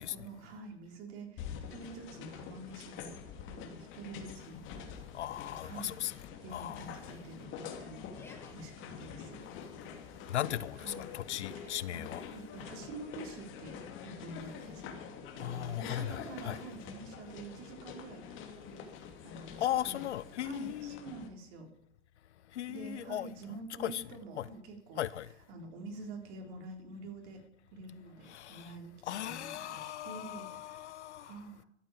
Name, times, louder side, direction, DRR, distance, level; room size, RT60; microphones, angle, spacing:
voice 1, 0.1-3.1 3.5-4.9 5.6-6.1 6.4-9.4 10.8-11.0 11.6-15.1 15.3-18.9 19.2-20.0 20.4-21.7 22.7-25.0 25.5-27.4 27.7-29.0 29.2-30.9 31.2-31.7, right 3 dB, 45° right, 3.6 m, -47 dB
sound 1, 1.4-21.3, left 7 dB, 35° left, 2.5 m, -46 dB
voice 2, 5.1-6.1 6.5-6.9 10.3-12.2 15.4-16.6 19.6-21.0 22.5-23.3 23.8-24.0 24.4-24.5 25.0-25.3 28.3-28.7 29.1-31.3, left 12 dB, 75° left, 0.7 m, -37 dB
Yell, 6.6-7.1 8.0-8.5 9.3-9.8 11.0-11.9 13.7-14.3, left 3 dB, 5° left, 1.6 m, -60 dB
12.5 x 8.7 x 8.5 m
hypercardioid pair, 125°, 35 cm